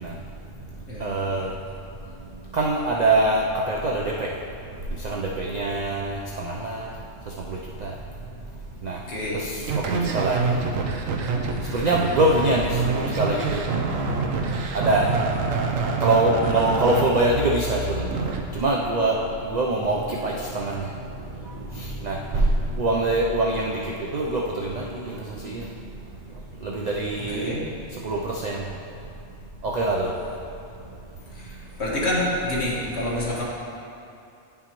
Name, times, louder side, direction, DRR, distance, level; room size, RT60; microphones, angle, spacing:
voice 1, 1.0-1.5 2.5-4.3 5.0-6.9 7.5-7.9 8.8-9.0 9.3-10.6 11.7-13.6 14.7-15.0 16.0-18.1 18.5-20.9 21.8-22.5 22.8-25.2 25.4-25.7 26.6-27.5 28.0-28.6 29.6-30.1, right 2 dB, 65° right, -2 dB, 0.4 m, -24 dB
voice 2, 9.1-9.4 16.5-16.7 27.3-27.6 31.4-31.5 31.8-33.4, left 1 dB, 55° left, -7 dB, 1.8 m, -27 dB
sound 1, 9.6-18.4, right 4 dB, 80° right, 1.0 m, -26 dB
9.6 x 5.5 x 2.9 m, 2.6 s
omnidirectional pair, 1.3 m